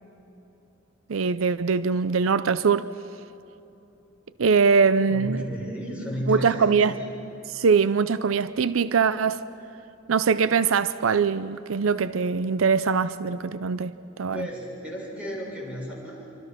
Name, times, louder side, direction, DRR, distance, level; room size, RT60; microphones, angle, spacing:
voice 1, 1.1-2.9 4.4-5.4 6.3-6.9 7.5-9.4 10.1-13.9 14.2-14.5, right 5 dB, 85° right, 0.5 m, -22 dB
voice 2, 5.1-6.9 14.3-16.4, equal, 5° right, 6.7 m, -33 dB
27.0 x 24.5 x 6.1 m
head